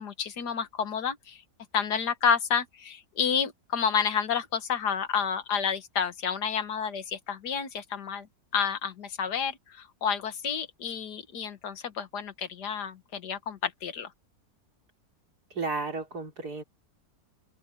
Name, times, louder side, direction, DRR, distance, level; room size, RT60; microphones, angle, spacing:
voice 1, 0.0-1.4 1.7-8.3 8.5-14.1, left 7 dB, 90° left, 1.9 m, -30 dB
voice 2, 15.5-16.6, right 3 dB, 75° right, 4.1 m, -33 dB
open air
omnidirectional pair, 1.7 m